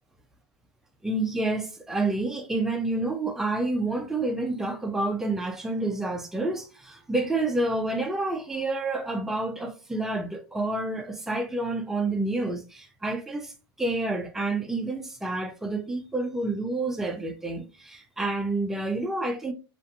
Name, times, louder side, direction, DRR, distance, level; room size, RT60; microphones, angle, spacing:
voice 1, 1.0-13.5 13.8-19.5, right 2 dB, 5° right, 0.4 m, -29 dB
2.5 x 2.5 x 2.5 m
hypercardioid pair, 115°, 15 cm